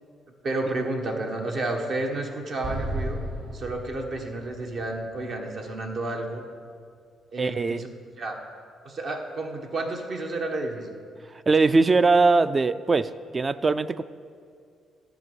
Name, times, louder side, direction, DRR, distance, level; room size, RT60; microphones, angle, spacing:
voice 1, 0.4-3.2 3.5-6.4 7.3-7.9 8.2-8.4 8.8-11.0, right 2 dB, 55° right, 2 dB, 1.3 m, -31 dB
Explosion, 2.6-5.9, right 1 dB, 75° right, 2.2 m, -35 dB
voice 2, 7.4-7.8 11.5-14.0, right 3 dB, 30° right, 14 dB, 0.3 m, -21 dB
10.5 x 5.1 x 8.0 m, 2.2 s
cardioid pair, 90°, 0 cm